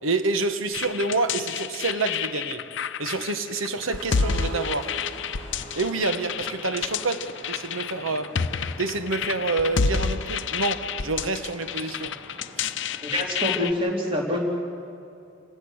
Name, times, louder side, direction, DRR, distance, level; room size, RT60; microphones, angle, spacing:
voice 1, 0.0-2.7 3.0-4.9 5.7-8.4 8.8-12.2 12.6-12.7, right 3 dB, 85° right, 9 dB, 1.3 m, -28 dB
sound 1, 0.7-13.7, left 6 dB, 65° left, 0.6 m, -30 dB
sound 2, 3.8-13.9, right 1 dB, 40° right, 5.5 m, -43 dB
voice 2, 13.0-14.4, left 1 dB, 25° right, -1 dB, 3.2 m, -26 dB
28.5 x 16.5 x 6.5 m, 2.6 s
head